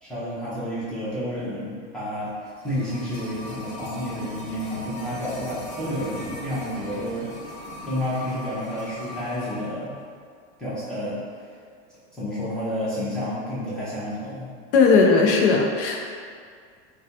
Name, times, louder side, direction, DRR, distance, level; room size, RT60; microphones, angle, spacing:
voice 1, 0.0-10.0 10.6-11.2 12.1-14.5, equal, ahead, -12 dB, 0.8 m, -30 dB
sound 1, 2.2-9.7 9.9-10.0, left 1 dB, 25° left, 1.2 m, -39 dB
voice 2, 14.7-16.0, left 4 dB, 60° left, 0 dB, 0.5 m, -17 dB
3.3 x 2.3 x 2.7 m, 2.1 s
supercardioid pair, 160°, 32 cm